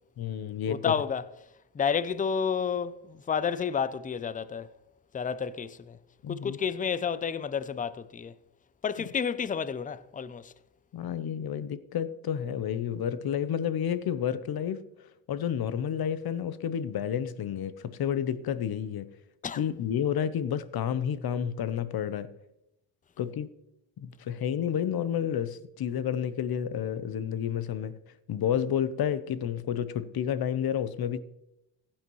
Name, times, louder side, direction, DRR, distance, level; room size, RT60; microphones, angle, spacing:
voice 1, 0.2-1.0 6.2-6.6 10.9-14.8 15.3-19.1 19.6-22.3 23.2-23.5 24.0-28.0 28.3-31.2, left 9 dB, 50° left, 0.8 m, -30 dB
voice 2, 0.7-1.3 1.7-4.7 5.1-6.0 6.3-8.3 8.8-10.5 19.4-19.6, left 6 dB, 20° left, 0.4 m, -30 dB
15.5 x 8.8 x 3.1 m
cardioid pair, 85°, 49 cm